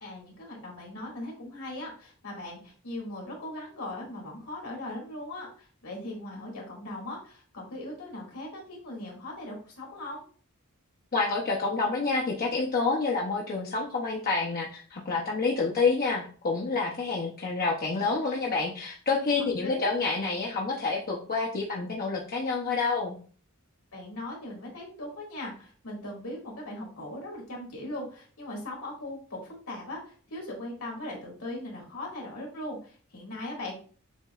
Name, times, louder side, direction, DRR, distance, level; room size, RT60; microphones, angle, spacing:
voice 1, 0.0-10.2 19.6-19.9 23.9-33.7, left 1 dB, 80° left, -2 dB, 2.0 m, -39 dB
voice 2, 11.1-23.2, left 4 dB, 45° left, -2 dB, 0.6 m, -28 dB
7.0 x 2.8 x 2.3 m, 0.42 s
head